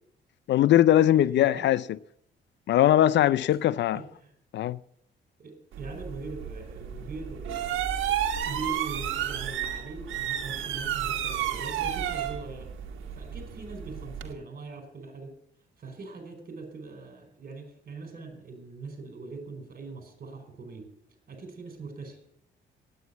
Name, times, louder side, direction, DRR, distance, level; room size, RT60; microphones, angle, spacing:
voice 1, 0.5-1.8 2.7-4.0 4.5-4.8, left 12 dB, 65° left, 0.4 m, -21 dB
voice 2, 1.1-1.7 3.3-3.6 3.9-4.3 5.4-12.7 13.1-15.3 15.8-20.9 21.3-22.2, right 3 dB, 45° right, 4.8 m, -42 dB
sound 1, 5.7-14.3, right 10 dB, 80° right, 1.6 m, -32 dB
9.3 x 9.3 x 9.3 m
cardioid pair, 90°, 20 cm